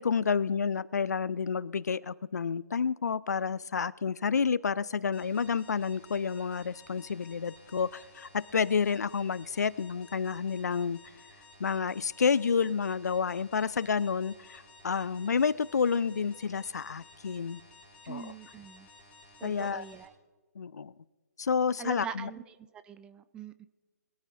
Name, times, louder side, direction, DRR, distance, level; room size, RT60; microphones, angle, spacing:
voice 1, 0.0-11.0 11.6-17.6 18.1-18.3 19.4-19.8 20.6-20.9 21.4-22.3, left 6 dB, 75° left, 21 dB, 0.5 m, -30 dB
sound 1, 5.1-20.0, left 2 dB, 10° left, 5.5 m, -55 dB
voice 2, 18.0-18.9 19.4-20.1 21.8-22.6 22.8-23.7, right 7 dB, 10° right, 14 dB, 0.4 m, -42 dB
22.0 x 13.0 x 2.8 m, 1.3 s
figure-of-eight pair, 145°, 9 cm